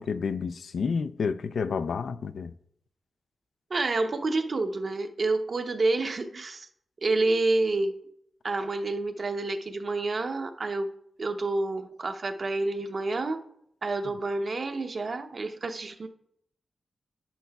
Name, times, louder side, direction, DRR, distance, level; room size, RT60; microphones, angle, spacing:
voice 1, 0.0-2.5, left 5 dB, 75° left, 0.4 m, -30 dB
voice 2, 3.7-6.7 7.0-8.0 8.4-10.9 11.2-13.4 13.8-16.1, right 2 dB, 50° right, 0.8 m, -28 dB
10.0 x 9.4 x 2.3 m
wide cardioid pair, 85°, 0 cm